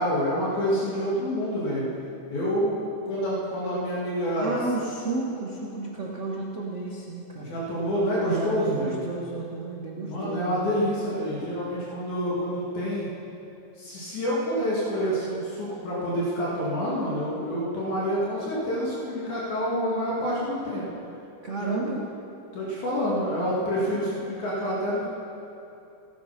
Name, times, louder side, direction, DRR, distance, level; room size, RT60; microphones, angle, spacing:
voice 1, 0.0-1.8 2.3-4.6 7.4-9.0 10.0-13.1 13.8-20.9 21.6-21.9 22.5-25.1, equal, 80° left, -7 dB, 3.5 m, -27 dB
voice 2, 4.4-7.6 8.2-10.8 21.4-22.0, right 3 dB, 80° right, -3 dB, 0.6 m, -32 dB
16.5 x 8.8 x 5.8 m, 2.8 s
omnidirectional pair, 3.3 m